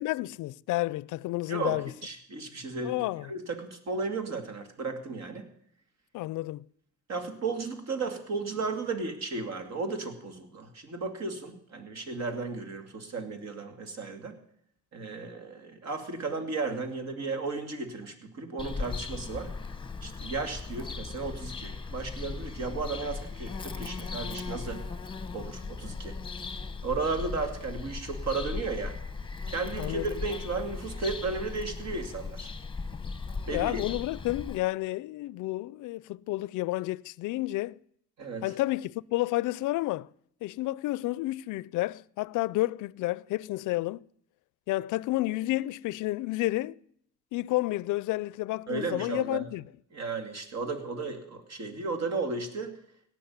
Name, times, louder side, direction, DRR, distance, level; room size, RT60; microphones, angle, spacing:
voice 1, 0.0-1.9 2.8-3.3 6.1-6.7 29.8-30.2 33.5-37.7 38.4-40.1 40.4-44.0 44.7-46.8 47.3-49.6, left 18 dB, 85° left, 0.5 m, -30 dB
voice 2, 1.5-5.4 7.1-14.3 14.9-19.5 20.0-24.8 25.3-26.2 26.8-28.9 29.5-32.5 33.5-33.8 38.2-38.4 48.7-49.5 49.9-52.7, right 3 dB, 60° right, 2.7 m, -34 dB
Bird vocalization bird call bird song, 18.6-34.6, left 4 dB, 15° left, 0.9 m, -38 dB
17.0 x 6.2 x 9.5 m
cardioid pair, 90°, 30 cm